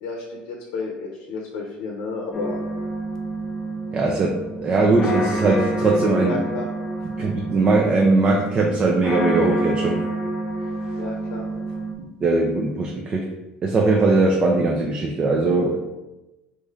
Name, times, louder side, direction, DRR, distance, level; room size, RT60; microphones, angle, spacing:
voice 1, 0.0-2.6 6.2-6.7 7.0-7.1 11.0-11.5, left 3 dB, 90° left, -1 dB, 0.6 m, -31 dB
sound 1, 2.3-11.9, right 1 dB, 20° left, 0.5 m, -28 dB
voice 2, 3.9-6.4 7.2-10.0 12.2-13.3 13.6-15.8, right 3 dB, 35° right, 0 dB, 0.4 m, -20 dB
3.1 x 2.6 x 3.6 m, 1.0 s
cardioid pair, 120°, 3 cm